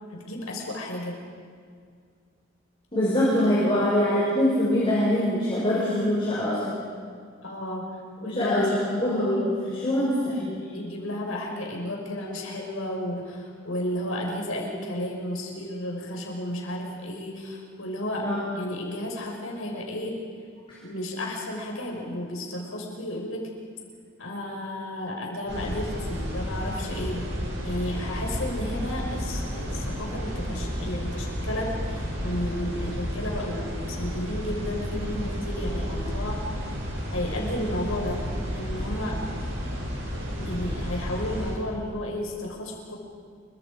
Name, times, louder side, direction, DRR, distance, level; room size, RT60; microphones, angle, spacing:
voice 1, 0.1-1.2 3.4-3.9 7.4-9.1 10.7-20.1 20.8-23.5 24.2-27.3 27.6-36.5 37.1-38.3 38.5-39.2 40.4-43.0, left 1 dB, 80° left, 0 dB, 5.6 m, -33 dB
voice 2, 2.9-6.8 8.3-10.6 18.2-18.4, left 1 dB, 25° left, -7 dB, 5.4 m, -24 dB
sound 1, 25.5-41.5, equal, 60° right, 6.2 m, -32 dB
28.5 x 24.0 x 5.1 m, 2.1 s
head